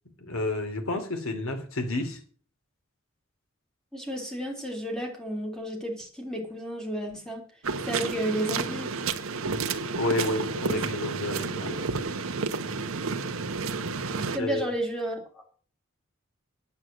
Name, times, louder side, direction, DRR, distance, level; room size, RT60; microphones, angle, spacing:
voice 1, 0.2-2.2 9.9-11.9 14.4-14.6, left 2 dB, 70° left, 2.7 m, -30 dB
voice 2, 3.9-7.5 7.8-8.9 10.7-10.8 14.3-15.5, right 1 dB, 5° left, 3.4 m, -32 dB
sound 1, 7.6-14.4, right 4 dB, 75° right, 1.1 m, -31 dB
9.5 x 8.4 x 7.6 m
head